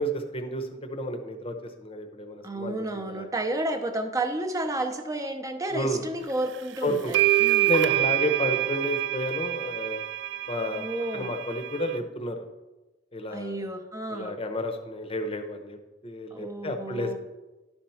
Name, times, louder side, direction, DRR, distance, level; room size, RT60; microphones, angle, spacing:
voice 1, 0.0-3.3 5.7-6.0 6.8-7.1 7.7-10.0 10.5-10.9 11.1-12.4 13.1-13.6 14.1-15.8 16.0-17.2, equal, 30° left, 6 dB, 0.8 m, -31 dB
voice 2, 2.4-7.7 10.8-11.3 13.3-14.4 16.3-17.2, right 1 dB, 20° right, 6 dB, 0.7 m, -31 dB
sound 1, 6.5-6.6 7.1-12.0, right 16 dB, 65° right, 0.3 m, -26 dB
11.5 x 4.4 x 5.6 m, 1.1 s
head